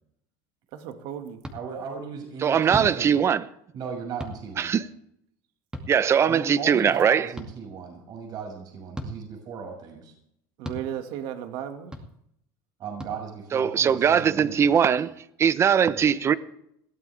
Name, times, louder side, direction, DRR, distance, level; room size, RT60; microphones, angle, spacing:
voice 1, 0.7-1.4 10.6-11.9 16.3-16.4, right 10 dB, 65° right, 2.1 m, -35 dB
sound 1, 1.4-1.6 2.7-2.9 4.2-4.4 5.7-5.9 7.4-7.5 8.9-9.1 10.6-10.8 11.9-12.1 13.0-13.1, equal, 10° right, 2.3 m, -35 dB
voice 2, 1.5-3.1 3.7-4.7 6.2-10.1 12.8-15.0 15.9-16.1, right 6 dB, 50° right, 6.6 m, -36 dB
voice 3, 2.4-3.5 4.6-4.9 5.9-7.3 13.5-15.1 15.4-16.4, right 7 dB, 30° right, 0.9 m, -21 dB
22.0 x 16.0 x 3.5 m
supercardioid pair, 125°, 9 cm